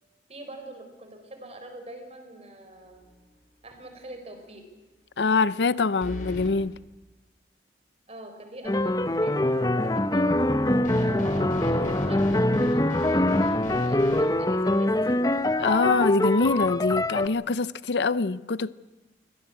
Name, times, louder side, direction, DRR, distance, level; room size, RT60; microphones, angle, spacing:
voice 1, 0.3-3.0 3.6-4.6 8.1-10.3 11.0-15.2, right 1 dB, 35° right, 4.7 m, -43 dB
sound 1, 2.9-3.4 3.7-3.8 6.0-6.5 10.8-14.3, equal, 50° left, 4.7 m, -39 dB
voice 2, 5.2-6.8 15.6-18.7, left 4 dB, 75° left, 0.6 m, -24 dB
sound 2, 8.6-17.3, left 1 dB, 20° left, 0.8 m, -24 dB
23.5 x 18.0 x 8.2 m
head